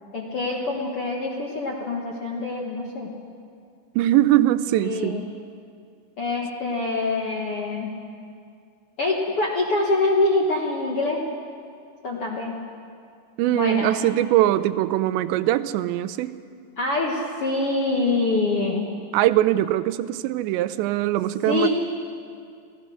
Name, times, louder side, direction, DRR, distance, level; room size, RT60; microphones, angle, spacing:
voice 1, 0.1-3.1 4.8-5.2 6.2-7.9 9.0-11.2 12.0-12.6 13.5-13.9 16.8-19.0 21.4-21.7, left 2 dB, 60° left, -2 dB, 1.4 m, -25 dB
voice 2, 4.0-5.2 13.4-16.3 19.1-21.7, right 13 dB, 85° right, 13 dB, 2.9 m, -21 dB
27.0 x 16.5 x 6.5 m, 2.3 s
omnidirectional pair, 5.1 m